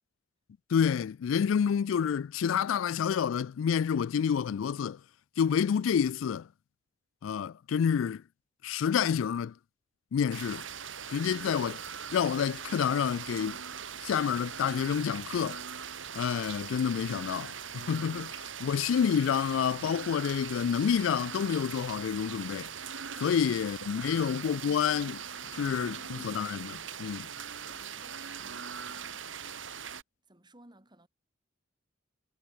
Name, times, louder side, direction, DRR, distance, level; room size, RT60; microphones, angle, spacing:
voice 1, 0.7-5.0 5.4-6.5 7.2-8.2 8.6-9.5 10.1-10.6 11.1-11.8 12.1-13.6 14.0-15.6 16.1-18.3 18.6-22.7 23.2-25.2 25.6-27.3, left 7 dB, 85° left, 0.3 m, -28 dB
sound 1, 10.3-30.0, right 7 dB, 70° right, 2.0 m, -41 dB
voice 2, 27.7-29.7 30.2-31.1, right 1 dB, 25° right, 3.9 m, -61 dB
head